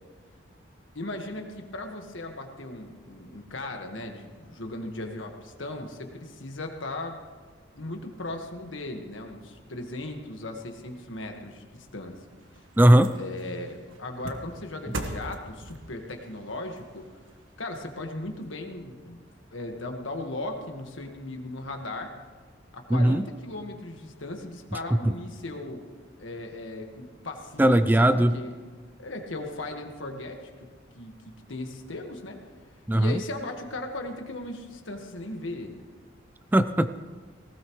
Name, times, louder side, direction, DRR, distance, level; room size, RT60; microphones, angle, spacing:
voice 1, 0.9-7.2 7.7-12.2 13.1-17.1 17.6-19.2 19.5-22.1 22.7-25.8 26.2-28.5 29.0-30.5 30.9-32.4 32.9-35.8, left 2 dB, 75° left, 4 dB, 1.6 m, -37 dB
sound 1, 12.0-18.4 18.9-19.0, right 1 dB, 80° right, 1.4 m, -42 dB
voice 2, 12.8-13.1 22.9-23.3 25.0-25.1 27.6-28.3 32.9-33.2 36.5-37.0, right 1 dB, 10° right, 11 dB, 0.3 m, -19 dB
18.5 x 16.0 x 3.2 m, 1.5 s
head